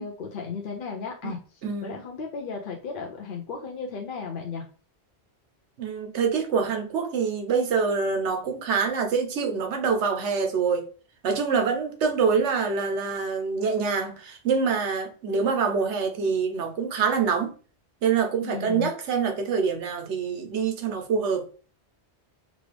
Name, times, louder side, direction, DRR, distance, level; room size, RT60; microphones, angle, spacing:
voice 1, 0.0-4.7 18.4-18.9, left 5 dB, 55° left, 0.8 m, -35 dB
voice 2, 1.6-2.0 5.8-10.9 11.2-17.5 18.0-21.4, right 5 dB, 90° right, 1.1 m, -25 dB
5.1 x 2.4 x 3.3 m
omnidirectional pair, 1.1 m